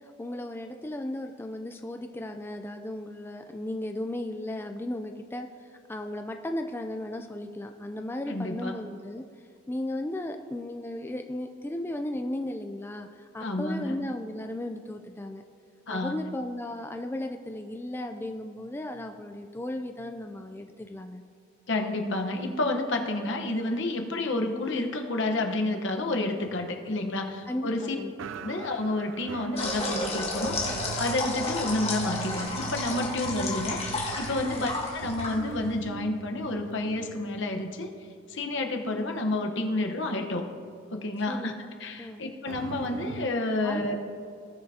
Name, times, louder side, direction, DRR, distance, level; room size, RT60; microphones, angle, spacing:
voice 1, 0.0-9.2 9.7-15.4 15.9-21.2 27.5-28.1 34.4-34.7 41.3-41.5 42.0-42.2 43.6-43.8, left 1 dB, 10° left, 5 dB, 0.3 m, -35 dB
voice 2, 8.3-8.7 13.4-13.9 15.9-16.2 21.7-28.0 28.4-37.9 38.3-40.5 40.9-41.5 41.8-44.0, left 2 dB, 65° left, 3 dB, 1.0 m, -30 dB
sound 1, 26.4-27.7 28.2-38.6 38.9-39.1 39.7-39.8 42.5-43.3, right 6 dB, 80° right, 0.3 m, -42 dB
sound 2, 29.6-35.8, left 2 dB, 30° left, 1.6 m, -32 dB
18.0 x 6.7 x 2.8 m, 2.3 s
head